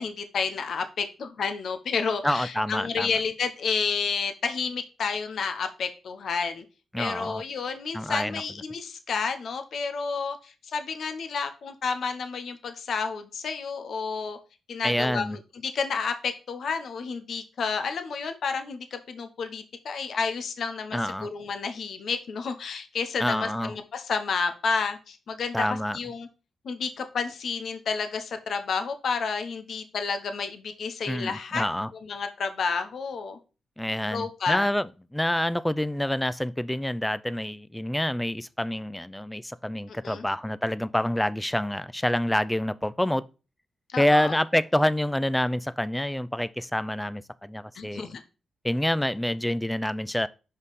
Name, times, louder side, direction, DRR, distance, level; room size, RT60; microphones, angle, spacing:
voice 1, 0.0-6.6 7.0-14.4 14.7-26.3 26.6-31.7 32.0-33.4 34.1-34.7 39.9-40.3 43.9-44.3 47.7-48.2, left 5 dB, 70° left, 0.9 m, -30 dB
voice 2, 2.2-3.1 6.9-7.4 7.9-8.4 14.8-15.4 20.9-21.3 23.2-23.7 25.5-26.0 31.1-31.9 33.8-43.2 44.0-48.1 48.6-50.3, left 1 dB, 10° left, 0.4 m, -27 dB
5.5 x 5.1 x 4.1 m
cardioid pair, 60°, 0 cm